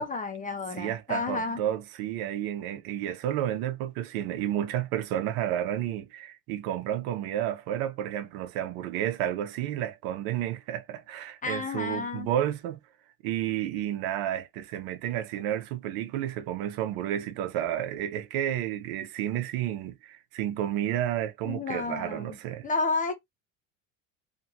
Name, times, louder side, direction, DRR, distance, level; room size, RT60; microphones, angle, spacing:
voice 1, 0.0-1.6 11.4-12.3 21.4-22.4 22.6-23.1, left 3 dB, 20° left, 0.8 m, -31 dB
voice 2, 0.8-12.8 13.2-22.7, right 11 dB, 70° right, 0.7 m, -31 dB
2.6 x 2.6 x 2.7 m
supercardioid pair, 95°, 38 cm